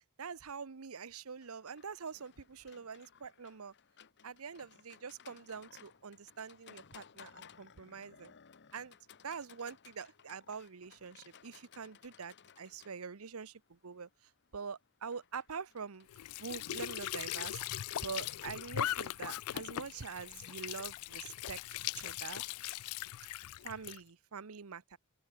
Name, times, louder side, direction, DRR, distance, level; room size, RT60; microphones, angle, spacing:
voice 1, 0.2-3.7 4.2-8.3 8.7-9.0 9.2-14.1 14.5-16.1 16.4-17.6 18.0-21.6 21.9-22.4 23.6-25.0, right 5 dB, 75° right, 0.8 m, -45 dB
Livestock farm animals working animals, 1.4-19.5, left 7 dB, 55° left, 1.1 m, -60 dB
Squeak / Sink (filling or washing) / Trickle dribble, 16.1-24.0, left 13 dB, 80° left, 0.4 m, -40 dB
open air
head